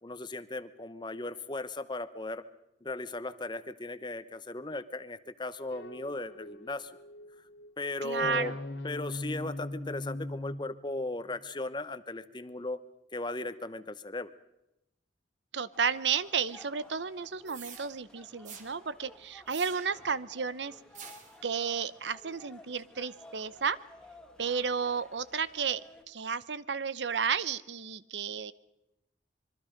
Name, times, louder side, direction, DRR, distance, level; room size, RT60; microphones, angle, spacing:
voice 1, 0.0-2.4 2.8-6.9 7.8-8.5 8.8-12.8 13.1-14.3, left 2 dB, 25° left, 13 dB, 1.0 m, -37 dB
sound 1, 5.7-7.8 8.2-11.4, left 1 dB, 90° left, 2.1 m, -41 dB
voice 2, 8.0-8.5 15.5-20.7 21.4-23.8 24.4-28.5, right 6 dB, 75° right, 17 dB, 0.8 m, -32 dB
sound 2, 15.7-26.0, left 1 dB, 5° left, 1.9 m, -55 dB
sound 3, 17.5-17.9 18.4-18.7 19.5-20.1 20.9-21.4, right 7 dB, 45° right, 2.7 m, -47 dB
26.0 x 23.5 x 5.2 m, 0.89 s
head